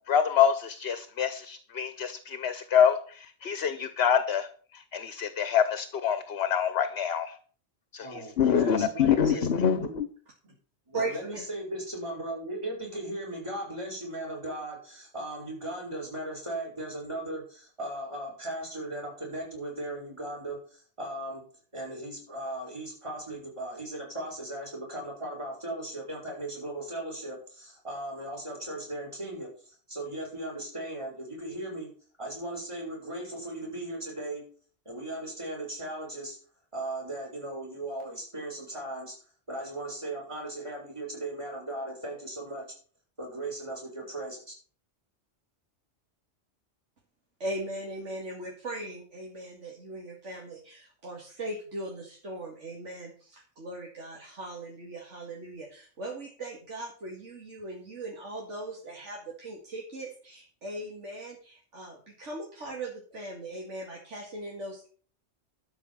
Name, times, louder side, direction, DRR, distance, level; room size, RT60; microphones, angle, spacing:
voice 1, 0.1-4.5 4.7-7.4 7.9-10.1, left 8 dB, 65° left, 12 dB, 1.1 m, -26 dB
voice 2, 8.0-9.5 9.8-10.0 10.4-10.5 10.9-21.4 21.7-31.9 32.2-34.4 34.8-36.4 36.7-39.2 39.5-42.7 43.2-44.5, right 1 dB, 25° right, -1 dB, 6.2 m, -37 dB
voice 3, 10.9-11.4 47.4-64.9, right 2 dB, 85° right, -2 dB, 2.7 m, -39 dB
12.0 x 5.8 x 7.4 m, 0.43 s
omnidirectional pair, 1.2 m